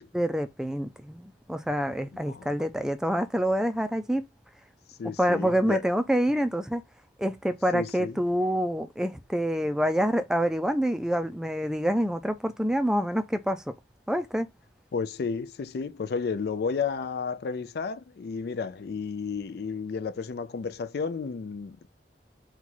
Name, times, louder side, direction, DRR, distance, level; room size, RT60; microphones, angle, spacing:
voice 1, 0.1-4.2 5.2-6.8 7.2-13.7 14.1-14.5, equal, 5° right, 0.4 m, -27 dB
voice 2, 5.0-5.8 7.7-8.2 14.9-21.9, left 5 dB, 60° left, 0.4 m, -32 dB
4.4 x 2.3 x 3.9 m
head